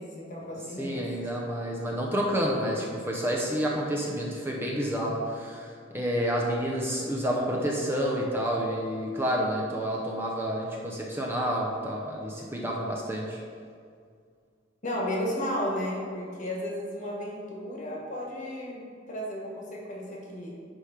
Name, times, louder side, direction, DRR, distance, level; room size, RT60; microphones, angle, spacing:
voice 1, 0.0-1.1 14.8-20.6, equal, 40° left, -2 dB, 1.4 m, -33 dB
voice 2, 0.8-5.7 5.9-13.4, equal, 10° right, -2 dB, 0.7 m, -29 dB
10.0 x 3.5 x 5.0 m, 2.2 s
head